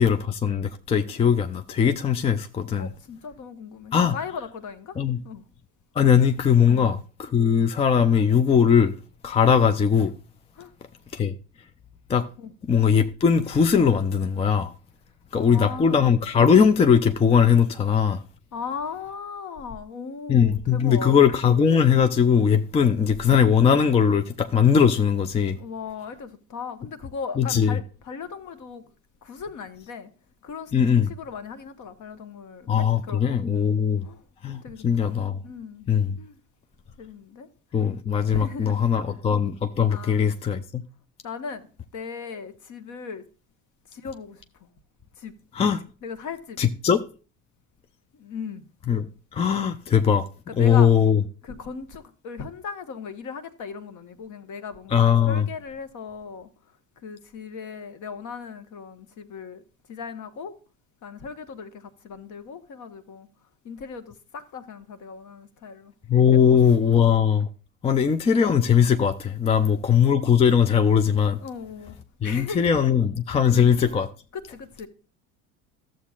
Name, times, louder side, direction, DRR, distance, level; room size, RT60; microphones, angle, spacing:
voice 1, 0.0-2.9 3.9-4.2 5.0-5.2 6.0-8.9 9.2-10.1 11.1-11.3 12.1-12.2 12.7-14.7 15.3-18.2 20.3-25.6 27.4-27.8 30.7-31.1 32.7-34.1 34.4-35.4 35.9-36.2 37.7-40.8 45.5-45.8 46.6-47.0 48.9-49.1 49.3-50.2 50.6-51.2 54.9-55.5 66.1-67.5 67.8-71.4 72.2-74.1, left 7 dB, 15° left, 0.4 m, -20 dB
voice 2, 2.8-5.0 5.2-5.4 6.6-6.9 7.5-7.6 10.6-10.7 12.4-12.5 15.3-16.0 18.5-21.2 25.6-28.9 29.2-30.1 30.4-34.2 34.6-35.9 36.2-36.4 37.0-37.5 37.7-37.9 38.3-39.2 39.9-40.2 41.2-43.2 43.9-44.7 45.2-45.3 46.0-46.6 48.1-48.6 50.5-50.9 51.4-56.5 57.0-59.6 59.9-60.5 61.0-63.3 63.6-65.9 66.3-66.6 66.9-67.2 71.4-72.0 72.2-72.7 73.5-73.7 74.3-74.9, left 5 dB, 45° left, 1.1 m, -38 dB
12.5 x 7.4 x 2.4 m
hypercardioid pair, 75°, 42 cm